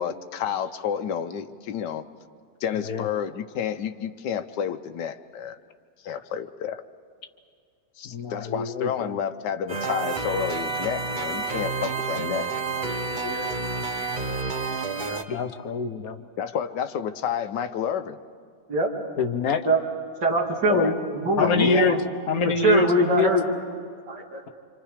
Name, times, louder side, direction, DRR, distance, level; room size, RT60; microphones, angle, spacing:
voice 1, 0.0-2.0 2.6-5.6 6.0-6.8 8.0-12.5 16.4-18.2 20.7-20.9 21.4-21.9, left 8 dB, 80° left, 9 dB, 1.4 m, -30 dB
voice 2, 8.0-9.2 15.3-16.2 19.2-19.6 21.4-22.0 22.3-23.3, left 4 dB, 60° left, 8 dB, 1.3 m, -25 dB
sound 1, 9.7-15.2, right 3 dB, 35° right, 0.9 m, -29 dB
voice 3, 20.2-22.0 22.6-23.4 24.1-24.4, right 1 dB, 70° right, -1 dB, 3.3 m, -23 dB
27.0 x 26.5 x 5.0 m, 2.2 s
omnidirectional pair, 1.9 m